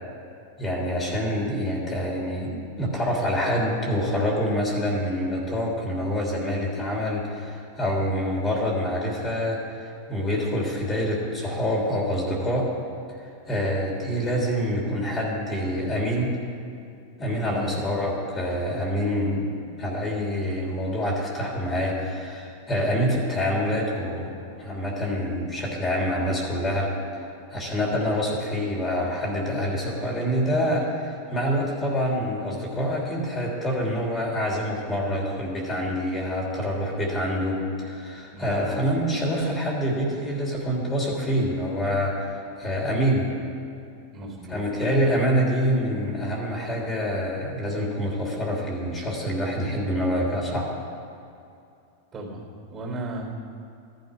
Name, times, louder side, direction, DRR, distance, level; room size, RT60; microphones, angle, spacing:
voice 1, 0.6-12.7 13.2-16.4 17.2-19.5 19.8-24.3 24.6-26.9 27.5-43.3 44.5-50.7, equal, 20° left, -2 dB, 3.1 m, -26 dB
voice 2, 17.4-17.8 38.3-38.9 44.1-44.6 52.1-52.4 52.7-53.2, right 2 dB, 30° right, 0 dB, 3.6 m, -36 dB
13.5 x 12.0 x 5.2 m, 2.6 s
hypercardioid pair, 125°, 0 cm